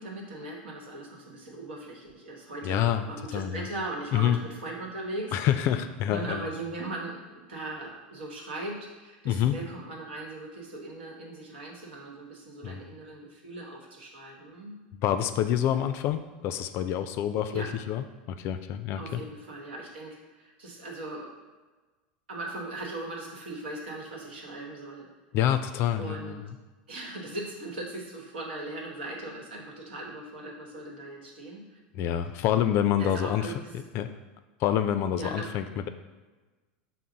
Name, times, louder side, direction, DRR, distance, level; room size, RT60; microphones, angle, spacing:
voice 1, 0.0-5.4 6.1-14.8 17.5-17.7 19.0-21.3 22.3-25.1 26.0-26.4 26.9-31.8 32.1-32.2 33.0-33.8 35.2-35.5, right 2 dB, 85° right, -1 dB, 1.0 m, -39 dB
voice 2, 2.6-3.0 3.3-3.7 4.1-4.4 5.3-6.5 9.2-9.6 12.6-12.8 15.0-19.2 25.3-26.3 31.9-33.5 33.9-34.1 34.6-35.9, left 10 dB, 50° left, 9 dB, 0.3 m, -27 dB
5.7 x 2.1 x 3.8 m, 1.3 s
hypercardioid pair, 105°, 6 cm